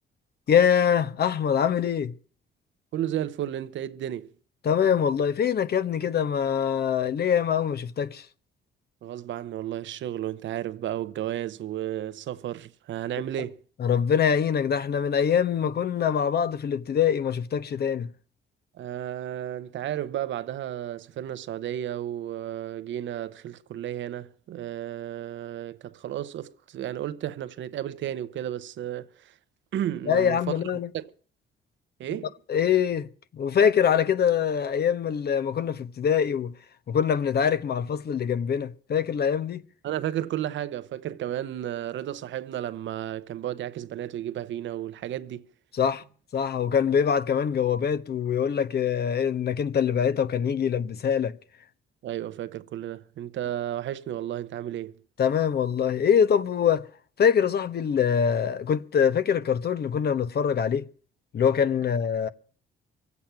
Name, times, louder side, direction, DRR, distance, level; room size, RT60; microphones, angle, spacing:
voice 1, 0.5-2.1 4.6-8.2 13.8-18.1 30.1-30.9 32.5-33.1 33.3-36.5 36.9-39.6 45.7-46.0 46.3-51.4 55.2-56.9 57.2-60.8 61.3-62.3, left 8 dB, 55° left, 1.1 m, -24 dB
voice 2, 2.9-4.3 9.0-13.6 18.7-29.3 29.7-30.4 30.9-31.1 32.0-32.3 39.8-45.5 52.0-55.0, right 11 dB, 70° right, 0.9 m, -33 dB
24.5 x 8.4 x 5.8 m
cardioid pair, 90°, 20 cm